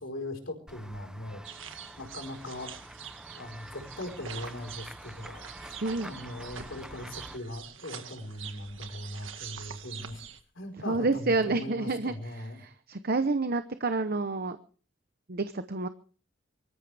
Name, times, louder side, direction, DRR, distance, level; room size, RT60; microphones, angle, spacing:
voice 1, 0.0-1.4 2.0-2.8 3.4-10.2 10.5-12.7, left 1 dB, 70° left, 3 dB, 4.6 m, -40 dB
Run / Walk footsteps / Bell, 0.7-7.4, right 1 dB, 5° right, 0.7 m, -47 dB
sound 1, 1.4-10.4, right 8 dB, 75° right, 1.7 m, -45 dB
voice 2, 5.8-6.1 10.9-12.1 12.6-14.6 15.3-15.9, right 3 dB, 50° right, 10 dB, 0.9 m, -28 dB
25.0 x 14.0 x 3.5 m, 0.42 s
head